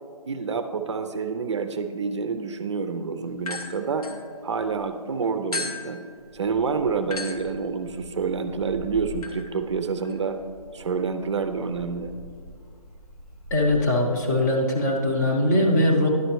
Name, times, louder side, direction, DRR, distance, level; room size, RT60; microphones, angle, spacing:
voice 1, 0.3-4.1 4.4-6.0 6.3-10.4 10.7-12.1, right 5 dB, 50° right, 8 dB, 0.5 m, -28 dB
sound 1, 3.4-4.9 5.5-13.8, left 3 dB, 75° left, 1.1 m, -39 dB
voice 2, 13.5-16.1, left 1 dB, 30° left, 1 dB, 0.8 m, -21 dB
10.5 x 6.4 x 3.1 m, 2.1 s
hypercardioid pair, 160°, 19 cm